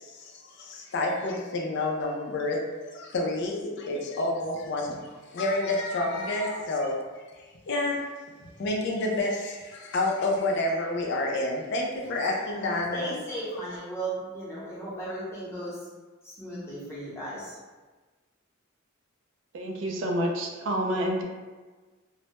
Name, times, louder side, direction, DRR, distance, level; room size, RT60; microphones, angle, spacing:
voice 1, 0.0-7.0 7.7-8.0 8.6-13.1, left 2 dB, 55° left, -1 dB, 0.4 m, -29 dB
voice 2, 12.9-15.9 16.2-17.6, right 1 dB, 15° left, -9 dB, 0.7 m, -36 dB
voice 3, 19.5-21.2, equal, 65° right, 1 dB, 0.3 m, -28 dB
2.1 x 2.1 x 2.8 m, 1.3 s
head